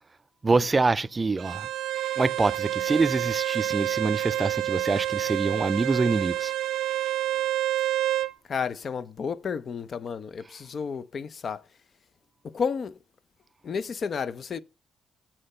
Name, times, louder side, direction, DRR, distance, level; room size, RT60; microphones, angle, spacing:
voice 1, 0.4-1.7 2.2-6.5, right 3 dB, 25° right, 0.3 m, -25 dB
Bowed string instrument, 1.4-8.3, right 13 dB, 85° right, 0.6 m, -28 dB
voice 2, 8.5-11.6 12.5-12.9 13.6-14.6, left 6 dB, 50° left, 0.5 m, -31 dB
8.7 x 4.4 x 5.4 m
cardioid pair, 90°, 0 cm